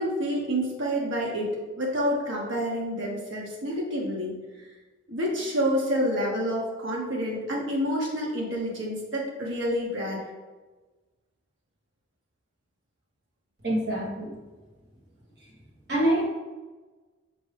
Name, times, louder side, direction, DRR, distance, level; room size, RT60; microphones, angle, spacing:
voice 1, 0.0-1.5 1.8-4.4 5.1-10.2, equal, 85° right, -3 dB, 0.9 m, -28 dB
voice 2, 13.6-14.3 15.9-16.2, right 1 dB, 55° right, -5 dB, 1.4 m, -25 dB
5.4 x 2.8 x 3.3 m, 1.3 s
head